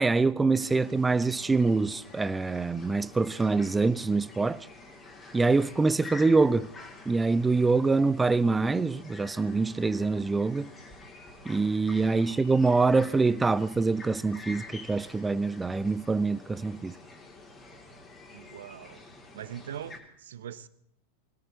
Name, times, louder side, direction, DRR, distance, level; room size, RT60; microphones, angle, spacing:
voice 1, 0.0-4.7 5.3-6.7 7.1-10.7 11.5-16.9, right 3 dB, 10° right, 0.5 m, -25 dB
sound 1, 0.6-20.0, left 2 dB, 20° left, 2.8 m, -48 dB
voice 2, 12.0-12.7 18.3-19.0 19.3-20.7, right 10 dB, 60° right, 0.7 m, -43 dB
24.5 x 17.0 x 2.9 m
figure-of-eight pair, 90°, 0 cm